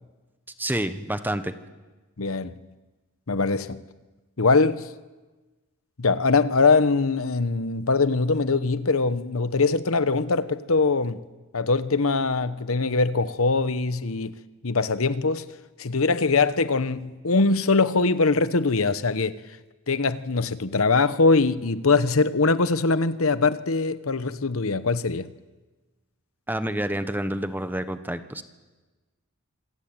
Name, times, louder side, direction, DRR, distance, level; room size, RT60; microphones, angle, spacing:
voice 1, 0.6-1.5 26.5-28.4, right 1 dB, 10° right, 1.2 m, -28 dB
voice 2, 2.2-2.5 3.3-3.8 4.4-4.9 6.0-11.2 11.5-14.3 14.6-19.4 19.9-25.3, left 3 dB, 75° left, 1.0 m, -22 dB
26.5 x 21.5 x 9.0 m
head